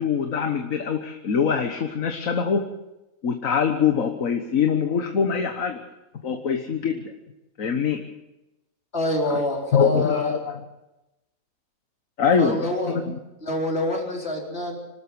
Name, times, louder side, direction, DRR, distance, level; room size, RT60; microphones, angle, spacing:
voice 1, 0.0-2.7 3.2-5.8 6.1-7.1 7.6-8.0 9.3-9.4 9.7-10.7 12.2-13.2, left 6 dB, 75° left, 6 dB, 1.7 m, -23 dB
voice 2, 8.9-10.3 12.4-13.0 13.4-14.8, left 1 dB, 50° left, 0 dB, 4.4 m, -26 dB
25.5 x 13.0 x 7.9 m, 0.95 s
omnidirectional pair, 1.4 m